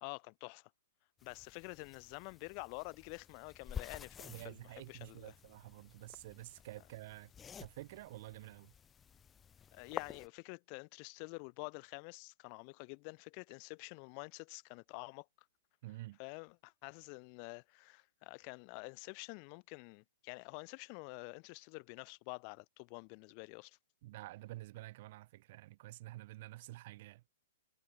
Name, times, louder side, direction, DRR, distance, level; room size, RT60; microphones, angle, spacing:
voice 1, 0.0-0.7 1.2-5.3 9.7-15.3 16.2-23.8, left 40 dB or more, 40° left, 0.4 m, -48 dB
sound 1, 1.2-10.3, left 7 dB, 15° left, 1.1 m, -50 dB
voice 2, 4.2-7.3 7.6-8.7 15.8-16.2 24.0-27.3, right 17 dB, 50° right, 0.5 m, -49 dB
figure-of-eight pair, 115°, 0 cm